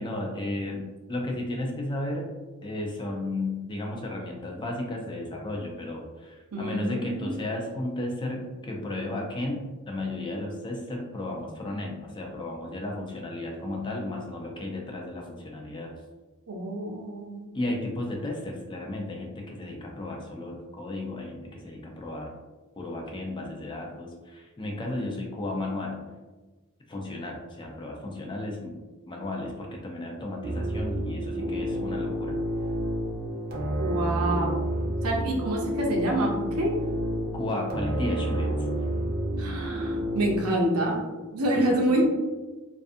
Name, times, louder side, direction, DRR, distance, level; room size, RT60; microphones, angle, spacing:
voice 1, 0.0-2.3 2.6-15.9 17.5-22.3 22.8-26.0 26.9-28.8 29.1-32.4 37.3-38.6 41.5-42.0, left 1 dB, 20° left, 0 dB, 0.4 m, -34 dB
voice 2, 6.5-7.4 16.5-17.5 33.8-34.5 35.0-36.3 36.6-36.8 39.4-41.0 41.3-42.0, right 1 dB, 85° right, 0 dB, 0.6 m, -27 dB
sound 1, 30.4-40.4, equal, 45° right, 0.6 m, -30 dB
2.5 x 2.4 x 2.5 m, 1.2 s
head